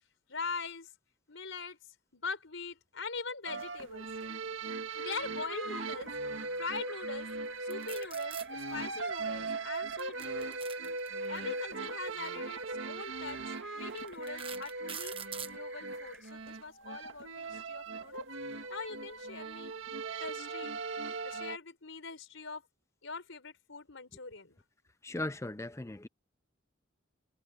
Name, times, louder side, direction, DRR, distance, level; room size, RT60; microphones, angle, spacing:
voice 1, 0.3-0.9 1.3-1.8 2.1-4.1 5.0-6.1 6.6-7.3 7.6-10.6 11.3-15.2 15.5-18.2 18.7-20.7 21.2-22.7 23.0-24.6, left 4 dB, 85° left, 4.3 m, -42 dB
sound 1, 3.4-21.6, right 3 dB, 85° right, 1.8 m, -39 dB
sound 2, 4.9-16.3, right 1 dB, 5° right, 5.1 m, -57 dB
sound 3, 7.7-8.5 9.9-11.4 12.5-12.7 13.3-13.4 14.0-15.6, right 8 dB, 30° right, 1.2 m, -43 dB
voice 2, 25.0-26.1, left 1 dB, 15° left, 0.5 m, -37 dB
head